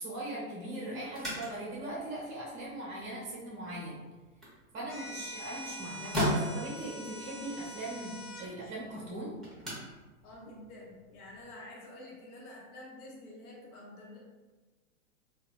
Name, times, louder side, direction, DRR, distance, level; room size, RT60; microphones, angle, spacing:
voice 1, 0.0-4.0 4.7-9.4, right 1 dB, 20° right, -5 dB, 0.6 m, -40 dB
sound 1, 1.0-11.5, equal, ahead, 1.0 m, -40 dB
sound 2, 4.9-8.5, equal, 30° left, 1.0 m, -44 dB
voice 2, 10.2-14.2, left 1 dB, 80° left, -2 dB, 0.9 m, -49 dB
2.8 x 2.2 x 2.6 m, 1.2 s
hypercardioid pair, 125°, 44 cm